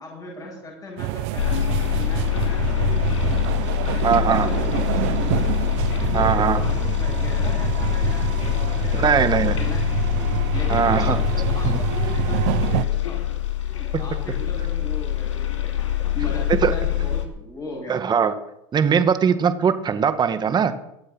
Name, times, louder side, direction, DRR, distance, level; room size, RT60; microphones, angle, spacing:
voice 1, 0.0-1.6 1.9-3.5 3.9-5.7 6.0-9.2 9.5-10.1 10.5-13.3 13.6-18.1, left 2 dB, 25° left, -2 dB, 7.8 m, -38 dB
sound 1, 1.0-12.8, right 18 dB, 65° right, 0.8 m, -27 dB
sound 2, 1.4-17.3, left 12 dB, 90° left, 2.7 m, -24 dB
voice 2, 4.0-4.5 6.1-6.6 8.9-9.6 10.7-11.2 11.6-11.8 16.6-16.7 17.9-18.3 18.7-20.7, right 7 dB, 30° right, 10 dB, 1.5 m, -20 dB
22.5 x 8.1 x 5.5 m, 0.83 s
hypercardioid pair, 100°, 15 cm